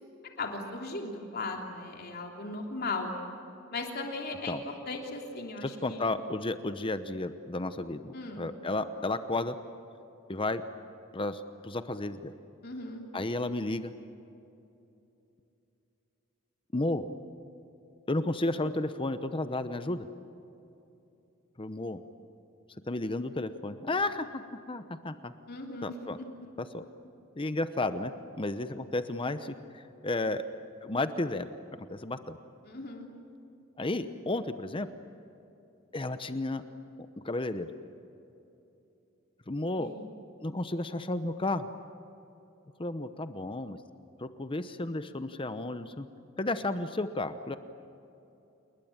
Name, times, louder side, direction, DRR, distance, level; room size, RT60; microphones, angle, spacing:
voice 1, 0.4-3.1 3.7-4.6 4.9-6.1 8.1-8.4 12.6-13.0 25.5-26.1 32.6-33.1 39.8-40.1, left 3 dB, 50° left, 2 dB, 3.1 m, -37 dB
voice 2, 5.6-9.6 10.3-10.6 11.1-12.3 13.1-13.9 16.7-17.0 18.1-20.1 21.6-22.0 22.9-25.3 25.8-26.2 26.6-26.8 27.4-28.1 28.4-30.4 30.8-31.5 31.8-32.4 33.8-34.9 35.9-36.6 37.2-37.7 39.5-39.9 40.4-41.7 42.8-43.8 44.2-46.0 46.4-47.6, left 2 dB, 25° left, 10 dB, 0.9 m, -32 dB
28.5 x 21.5 x 8.8 m, 2.8 s
head